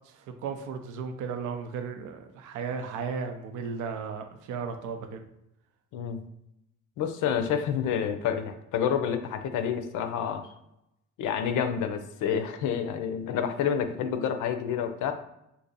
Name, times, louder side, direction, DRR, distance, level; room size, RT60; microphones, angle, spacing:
voice 1, 0.1-5.2, right 5 dB, 80° right, 6 dB, 0.5 m, -35 dB
voice 2, 7.0-10.5 11.2-15.1, left 8 dB, 80° left, 8 dB, 0.5 m, -29 dB
2.7 x 2.6 x 3.9 m, 0.83 s
cardioid pair, 90°, 30 cm